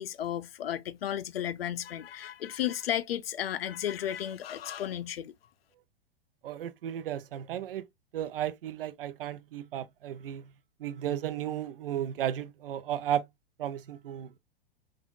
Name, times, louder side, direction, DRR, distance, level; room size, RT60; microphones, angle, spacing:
voice 1, 0.0-5.3, left 11 dB, 65° left, 0.5 m, -33 dB
voice 2, 6.4-7.9 8.1-10.5 10.8-13.3 13.6-14.4, right 10 dB, 60° right, 0.6 m, -34 dB
4.8 x 2.5 x 2.3 m
figure-of-eight pair, 105°, 31 cm